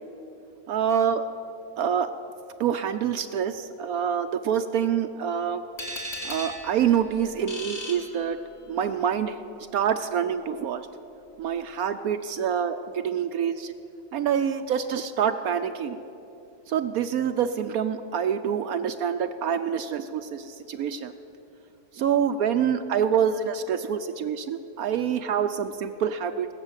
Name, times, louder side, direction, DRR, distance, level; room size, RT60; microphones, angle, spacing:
voice 1, 0.7-1.2 1.8-2.1 2.6-5.6 6.2-8.4 8.7-9.4 9.7-10.9 11.4-13.7 14.1-16.0 16.7-21.1 21.9-26.5, right 8 dB, 70° right, 10 dB, 0.9 m, -26 dB
sound 1, 5.8-8.8, left 1 dB, 40° left, 1.8 m, -37 dB
20.5 x 6.9 x 8.9 m, 2.9 s
omnidirectional pair, 1.9 m